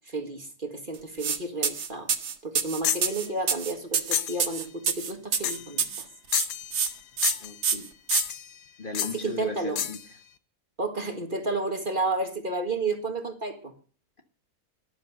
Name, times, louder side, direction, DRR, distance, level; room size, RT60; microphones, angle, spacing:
voice 1, 0.1-2.1 2.4-6.1 9.1-9.8 10.8-13.7, right 3 dB, 30° right, 6 dB, 1.9 m, -31 dB
sound 1, 1.2-1.4 1.6-6.0 6.3-6.9 7.2-7.3 7.6-8.2, right 6 dB, 80° right, 2.0 m, -27 dB
sound 2, 2.8-3.1 4.1-4.4 5.4-5.7 6.3-7.0 7.2-7.6 8.1-8.5 8.9-9.2 9.8-10.0, left 9 dB, 90° left, 1.5 m, -29 dB
voice 2, 7.4-7.9 8.8-10.0, left 3 dB, 35° left, 5 dB, 1.7 m, -37 dB
13.5 x 11.5 x 6.7 m, 0.41 s
omnidirectional pair, 1.7 m